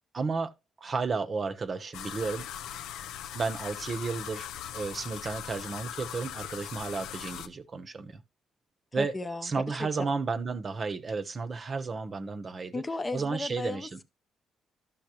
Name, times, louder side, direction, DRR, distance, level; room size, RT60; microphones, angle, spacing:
voice 1, 0.1-0.5 0.8-2.5 3.3-4.5 4.7-8.2 8.9-9.1 9.4-12.8 13.1-14.0, right 4 dB, 40° right, 0.8 m, -32 dB
sound 1, 1.9-7.5, left 10 dB, 85° left, 0.5 m, -40 dB
voice 2, 8.9-9.9 12.7-14.0, left 2 dB, 20° left, 0.7 m, -35 dB
12.0 x 5.7 x 2.9 m
cardioid pair, 90°, 0 cm